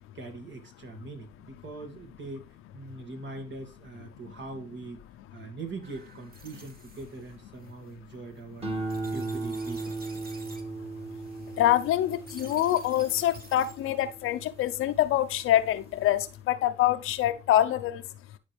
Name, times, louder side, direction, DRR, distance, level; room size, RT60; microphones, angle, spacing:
voice 1, 0.1-2.5 2.7-5.0 5.3-8.7 9.1-9.9, right 3 dB, 60° right, 2.0 m, -42 dB
sound 1, 5.8-13.9, right 2 dB, 45° right, 2.0 m, -51 dB
sound 2, 8.6-15.1 15.6-16.1, right 3 dB, 30° right, 1.8 m, -37 dB
voice 2, 11.6-18.0, left 12 dB, 90° left, 0.6 m, -25 dB
11.0 x 4.0 x 3.3 m
supercardioid pair, 55°, 21 cm